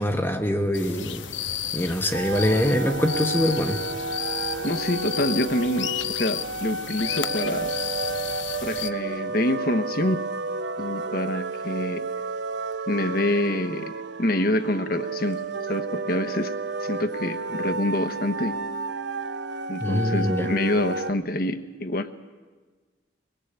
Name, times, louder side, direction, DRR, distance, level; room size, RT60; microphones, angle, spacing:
voice 1, 0.0-1.3 1.7-3.8 19.8-20.5, left 1 dB, 10° left, 3 dB, 1.1 m, -24 dB
sound 1, 0.7-8.9, left 10 dB, 85° left, 1.0 m, -33 dB
sound 2, 2.1-21.1, right 3 dB, 70° right, 0.9 m, -31 dB
voice 2, 4.6-7.7 8.6-10.2 10.8-12.1 12.9-16.5 16.8-18.5 19.7-22.1, left 1 dB, 50° left, 9 dB, 1.2 m, -26 dB
23.5 x 20.5 x 8.2 m, 1.4 s
head